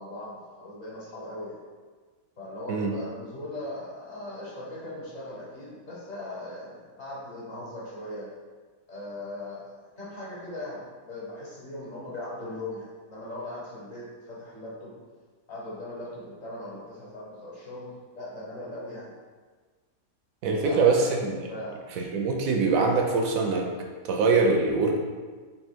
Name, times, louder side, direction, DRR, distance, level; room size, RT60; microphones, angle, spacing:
voice 1, 0.0-1.6 2.4-8.3 8.9-14.9 15.5-19.1 20.6-21.8, left 1 dB, 55° left, -6 dB, 1.2 m, -39 dB
voice 2, 20.4-21.4 22.0-23.7 24.0-25.0, right 4 dB, 75° right, 1 dB, 1.0 m, -23 dB
3.4 x 2.7 x 4.3 m, 1.5 s
omnidirectional pair, 1.5 m